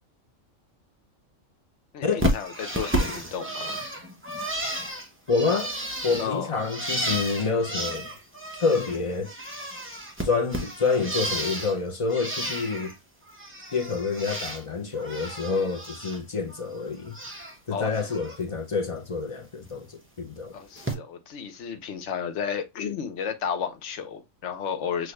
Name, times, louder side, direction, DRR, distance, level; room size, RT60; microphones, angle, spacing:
voice 1, 1.9-3.8 6.2-6.5 17.7-18.2 20.5-25.1, left 7 dB, 65° left, 1.1 m, -33 dB
Bird, 2.2-9.0 9.2-11.8 12.1-12.9 13.3-14.6 14.9-16.2 16.5-17.6 17.9-18.4 19.6-19.8 20.8-20.9, right 1 dB, 10° right, 0.8 m, -32 dB
voice 2, 5.3-5.7 6.0-8.1 8.6-9.3 10.2-12.9 13.7-17.2 17.7-20.5, left 4 dB, 35° left, 0.5 m, -27 dB
6.3 x 2.4 x 3.1 m
omnidirectional pair, 1.4 m